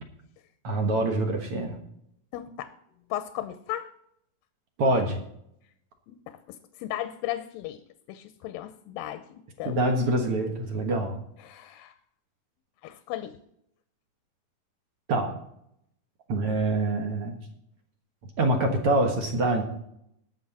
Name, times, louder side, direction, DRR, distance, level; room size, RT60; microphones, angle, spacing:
voice 1, 0.6-1.8 4.8-5.2 9.7-11.2 15.1-15.3 16.3-17.3 18.4-19.6, right 2 dB, 55° right, 4 dB, 1.8 m, -25 dB
voice 2, 2.3-2.8 3.1-3.9 6.1-7.8 8.1-9.8 11.4-11.9 12.8-13.4, left 13 dB, 85° left, 11 dB, 2.4 m, -36 dB
18.5 x 6.4 x 4.2 m, 0.73 s
omnidirectional pair, 4.0 m